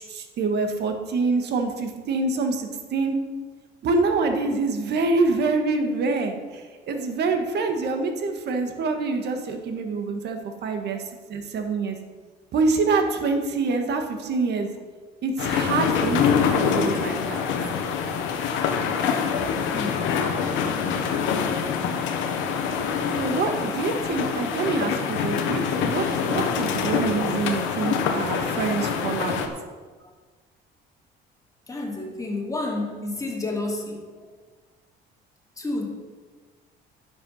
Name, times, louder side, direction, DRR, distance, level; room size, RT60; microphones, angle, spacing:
voice 1, 0.0-3.1 3.8-6.3 6.9-11.0 11.3-12.0 12.5-14.7 15.2-16.2 16.5-17.4 23.1-29.4, right 3 dB, 60° right, 5 dB, 1.7 m, -26 dB
sound 1, 15.4-29.5, left 6 dB, 80° left, 1.2 m, -25 dB
voice 2, 19.7-20.1 30.0-30.1 31.7-34.3 35.6-35.8, left 2 dB, 15° left, -1 dB, 2.7 m, -31 dB
10.5 x 7.1 x 5.6 m, 1.4 s
cardioid pair, 100°, 19 cm